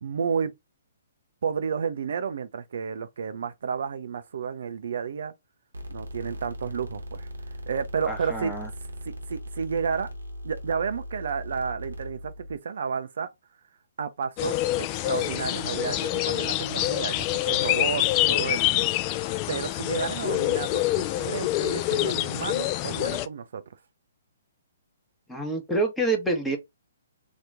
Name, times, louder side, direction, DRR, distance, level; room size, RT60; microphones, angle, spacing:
voice 1, 0.0-0.5 1.4-5.3 5.9-7.3 7.7-8.5 9.0-10.1 10.4-13.3 14.0-18.6 19.5-23.6, right 6 dB, 60° right, 0.4 m, -31 dB
sound 1, 5.7-12.6, equal, 80° right, 0.9 m, -39 dB
voice 2, 8.1-8.7 18.5-18.9 25.3-26.6, right 2 dB, 5° left, 1.0 m, -28 dB
sound 2, 14.4-23.3, left 16 dB, 30° left, 0.3 m, -26 dB
2.9 x 2.4 x 3.3 m
figure-of-eight pair, 125°, 0 cm